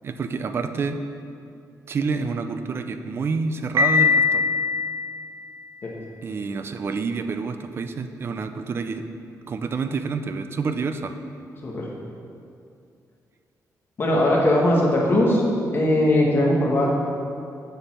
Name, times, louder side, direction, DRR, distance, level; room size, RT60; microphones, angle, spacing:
voice 1, 0.0-1.0 1.9-4.4 6.2-9.0 9.5-11.1, right 4 dB, 35° right, 8 dB, 0.5 m, -28 dB
Piano, 3.8-5.7, left 4 dB, 85° right, 0.7 m, -22 dB
voice 2, 14.0-15.4 15.7-16.9, left 1 dB, 35° left, -3 dB, 1.8 m, -19 dB
7.2 x 7.0 x 5.7 m, 2.4 s
wide cardioid pair, 160°, 7 cm